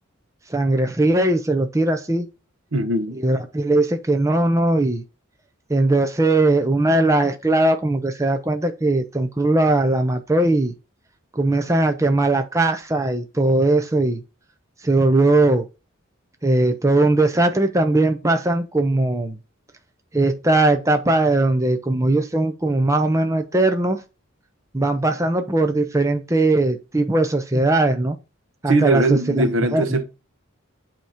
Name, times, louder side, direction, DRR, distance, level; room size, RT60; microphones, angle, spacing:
voice 1, 0.5-2.3 3.2-5.0 5.7-10.7 11.3-14.2 14.8-15.7 16.4-19.4 20.1-24.0 24.7-28.2 28.6-29.8, right 2 dB, 15° right, 0.7 m, -19 dB
voice 2, 2.7-3.2 27.5-27.7 28.7-30.0, right 2 dB, 80° right, 1.0 m, -21 dB
8.1 x 3.0 x 5.0 m
head